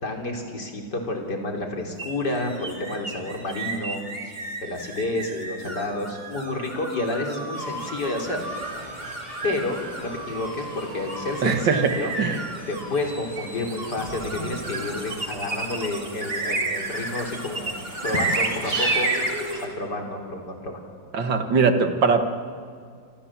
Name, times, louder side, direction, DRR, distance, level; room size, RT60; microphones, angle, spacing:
voice 1, 0.0-8.4 8.8-8.9 9.4-12.1 12.7-17.7 18.0-19.1 19.6-20.9, left 2 dB, 60° left, 2 dB, 4.3 m, -30 dB
sound 1, 2.0-19.7, right 3 dB, 30° right, 2.9 m, -32 dB
sound 2, 7.5-19.6, equal, 20° left, 6.9 m, -37 dB
voice 2, 11.4-11.9 12.2-12.4 21.1-22.2, right 5 dB, 75° right, 7 dB, 2.5 m, -21 dB
28.0 x 26.5 x 7.5 m, 2.2 s
omnidirectional pair, 2.0 m